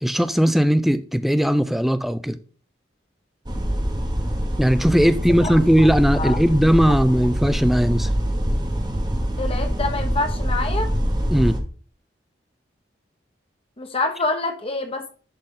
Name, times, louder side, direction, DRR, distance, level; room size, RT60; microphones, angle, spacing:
voice 1, 0.0-2.4 4.6-8.1 11.3-11.6, equal, ahead, 0.4 m, -18 dB
sound 1, 3.5-11.6, equal, 25° right, 1.0 m, -24 dB
voice 2, 9.4-10.9 13.8-15.1, left 3 dB, 30° left, 1.0 m, -26 dB
10.5 x 4.0 x 3.8 m
head